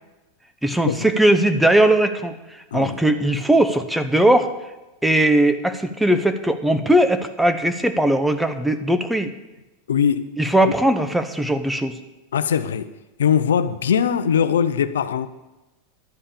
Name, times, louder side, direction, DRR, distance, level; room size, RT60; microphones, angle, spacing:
voice 1, 0.6-4.5 5.0-9.3 10.4-11.9, right 1 dB, 5° right, 0.9 m, -19 dB
voice 2, 9.9-10.3 10.6-10.7 12.3-12.9 13.2-15.3, left 8 dB, 85° left, 0.6 m, -21 dB
11.5 x 5.5 x 8.5 m
hypercardioid pair, 110°, 0 cm